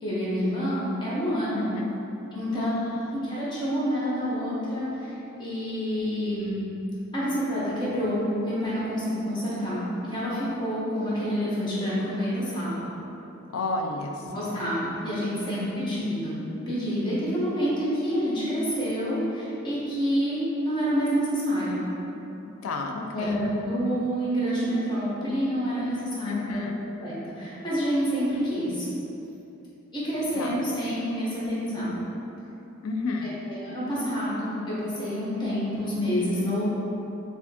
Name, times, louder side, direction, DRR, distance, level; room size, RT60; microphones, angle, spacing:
voice 1, 0.0-1.7 2.3-2.7 3.1-5.1 5.4-6.6 7.1-12.8 14.3-21.8 23.1-26.6 27.0-28.9 29.9-32.0 33.2-36.6, equal, 20° left, -9 dB, 0.9 m, -28 dB
voice 2, 1.5-1.9 2.5-3.2 13.5-14.6 15.5-15.7 22.6-23.4 26.2-26.8 30.4-30.6 32.8-33.3, left 3 dB, 80° left, 3 dB, 0.4 m, -31 dB
4.1 x 3.5 x 2.8 m, 2.9 s
head